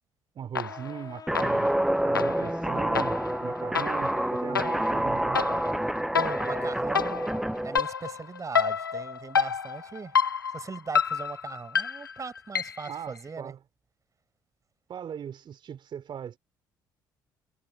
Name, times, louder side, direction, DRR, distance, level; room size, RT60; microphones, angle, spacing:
voice 1, 0.3-1.7 2.0-5.6 12.9-13.6 14.9-16.4, right 8 dB, 45° right, 4.3 m, -39 dB
sound 1, 0.6-1.0 1.4-13.0, left 6 dB, 85° left, 0.7 m, -30 dB
sound 2, 0.7-6.2, left 6 dB, 40° left, 5.6 m, -50 dB
Guitar, 1.3-7.8, right 1 dB, 5° right, 0.5 m, -28 dB
voice 2, 6.2-10.2 10.5-13.5, right 5 dB, 30° right, 7.2 m, -39 dB
figure-of-eight pair, 50°, 11 cm